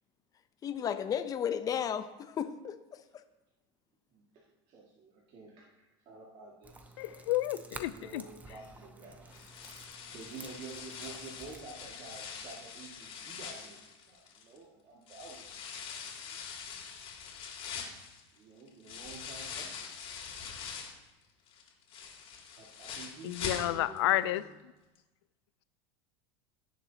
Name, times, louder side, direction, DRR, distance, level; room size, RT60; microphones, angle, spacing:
voice 1, 0.6-2.7, left 8 dB, 25° left, 10 dB, 0.7 m, -33 dB
voice 2, 4.7-5.7 6.1-7.2 7.8-9.3 9.7-15.6 16.3-16.4 18.4-19.7 22.6-24.4, right 4 dB, 45° right, -5 dB, 2.1 m, -49 dB
sound 1, 6.6-11.6, right 2 dB, 10° right, 0.6 m, -51 dB
voice 3, 7.0-8.2 23.2-24.4, left 16 dB, 85° left, 15 dB, 0.5 m, -30 dB
sound 2, 9.3-14.6 15.1-21.1 21.5-24.1 24.4-24.5 24.9-25.0, left 6 dB, 45° left, 2.6 m, -43 dB
17.5 x 6.9 x 2.9 m, 1.0 s
supercardioid pair, 135°, 14 cm